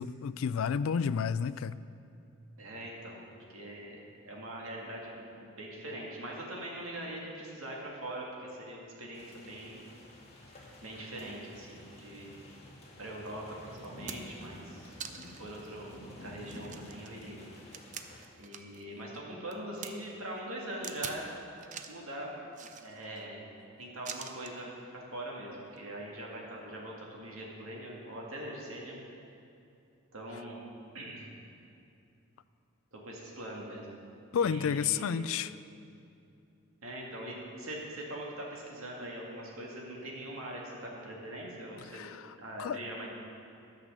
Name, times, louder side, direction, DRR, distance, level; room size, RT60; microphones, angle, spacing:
voice 1, 0.0-1.8 34.3-35.5 41.9-42.2 42.6-42.8, left 7 dB, 70° left, 16 dB, 0.3 m, -30 dB
voice 2, 2.6-3.2 3.5-4.0 4.2-9.8 10.8-12.3 13.0-15.0 15.3-17.7 18.4-21.3 21.9-23.4 23.8-29.0 30.1-30.6 30.9-31.3 32.9-34.0 34.3-35.3 36.8-42.1 42.4-43.1, right 1 dB, 70° right, -2 dB, 2.2 m, -42 dB
sound 1, 9.1-18.2, left 1 dB, 30° left, 1.7 m, -51 dB
sound 2, 13.3-13.4 13.8-14.4 15.0-15.5 15.9-16.0 16.4-18.8 19.1-19.9 20.8-21.2 21.6-22.0 22.5-23.2 24.0-24.6 25.7-25.8, right 7 dB, 35° right, 0.5 m, -44 dB
12.0 x 6.5 x 6.7 m, 2.6 s
head